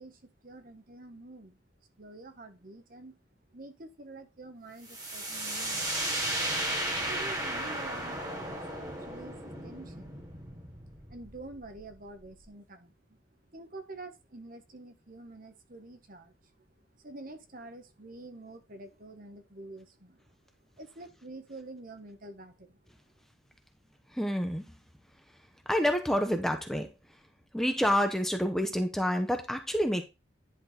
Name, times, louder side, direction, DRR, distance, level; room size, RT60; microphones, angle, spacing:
voice 1, 0.0-1.5 2.0-3.2 3.5-6.2 7.1-10.2 11.1-12.9 13.5-16.3 17.0-20.2 20.8-22.8, right 2 dB, 45° right, 8 dB, 1.1 m, -47 dB
sound 1, 4.9-12.5, right 1 dB, 20° right, 2.0 m, -35 dB
voice 2, 24.1-24.6 25.7-26.9 27.5-30.0, equal, ahead, 5 dB, 0.9 m, -28 dB
10.5 x 4.2 x 4.1 m, 0.25 s
head